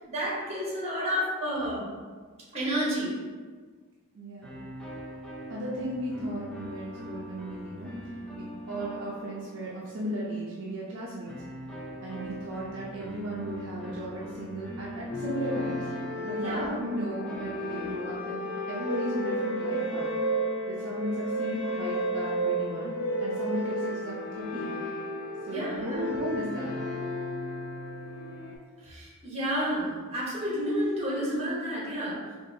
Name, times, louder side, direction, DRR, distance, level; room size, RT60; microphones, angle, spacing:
voice 1, 0.1-1.9 2.5-3.2 4.4-4.6 16.3-16.7 25.5-26.0 28.8-32.2, equal, 30° right, -5 dB, 1.1 m, -30 dB
voice 2, 4.1-4.5 5.5-7.9 8.3-11.3 12.0-15.9 16.2-20.1 20.7-22.9 23.2-24.7 25.4-26.7, right 1 dB, 55° right, -5 dB, 0.5 m, -35 dB
sound 1, 4.4-10.2 11.3-18.7, equal, 5° left, 0.5 m, -42 dB
sound 2, 15.1-28.6, equal, 85° left, 0.6 m, -33 dB
3.9 x 2.5 x 2.7 m, 1.5 s
head